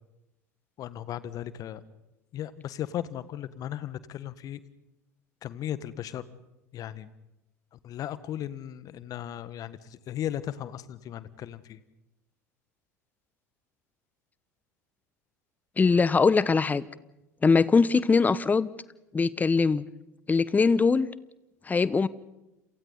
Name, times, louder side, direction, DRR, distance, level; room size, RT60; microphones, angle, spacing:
voice 1, 0.8-1.8 2.3-4.6 5.4-6.2 6.7-7.1 7.8-11.8, left 11 dB, 40° left, 16 dB, 1.6 m, -36 dB
voice 2, 15.8-16.8 17.4-18.7 19.1-19.8 20.3-21.1 21.7-22.1, left 4 dB, 20° left, 18 dB, 1.1 m, -22 dB
29.5 x 28.0 x 4.1 m, 0.95 s
figure-of-eight pair, 70°, 9 cm